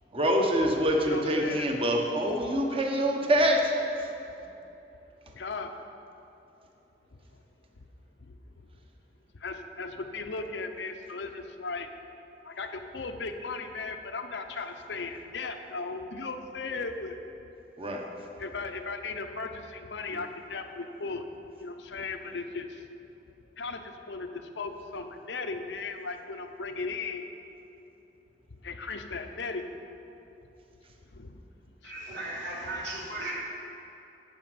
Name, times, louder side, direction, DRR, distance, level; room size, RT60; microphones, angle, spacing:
voice 1, 0.1-3.7 17.8-18.0, equal, 30° right, 1 dB, 1.0 m, -25 dB
voice 2, 1.1-1.7 5.3-5.8 8.3-8.4 9.3-11.9 12.4-17.2 18.4-21.2 21.6-22.8 23.6-24.3 24.6-27.3 28.6-29.6 31.1-31.4 31.8-31.9, left 4 dB, 80° left, 6 dB, 0.8 m, -36 dB
voice 3, 31.8-33.3, right 1 dB, 90° right, -5 dB, 2.8 m, -36 dB
12.0 x 5.1 x 7.8 m, 2.9 s
head